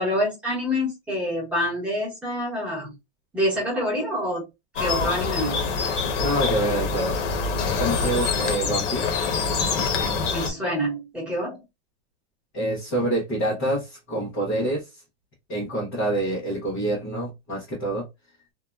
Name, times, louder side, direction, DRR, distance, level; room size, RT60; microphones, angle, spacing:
voice 1, 0.0-2.9 3.3-4.5 4.8-5.7 10.3-11.6, equal, 5° right, 0.8 m, -26 dB
sound 1, 4.8-10.5, left 5 dB, 80° left, 1.0 m, -25 dB
voice 2, 6.2-7.4 7.8-9.0 12.5-14.9 15.5-18.1, right 1 dB, 15° left, 0.3 m, -26 dB
3.1 x 2.0 x 2.2 m
supercardioid pair, 180°, 36 cm